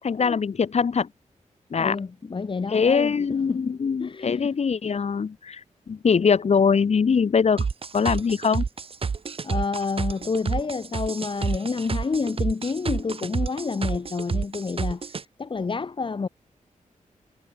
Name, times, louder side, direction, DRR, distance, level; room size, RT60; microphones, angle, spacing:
voice 1, 0.0-1.1 1.7-2.0 2.7-5.6 5.9-7.7 7.9-8.6, left 6 dB, 55° left, 4.8 m, -22 dB
voice 2, 1.8-4.5 9.4-16.3, left 4 dB, 40° left, 2.8 m, -29 dB
sound 1, 7.6-15.2, right 5 dB, 45° right, 1.9 m, -29 dB
wide cardioid pair, 115°, 13 cm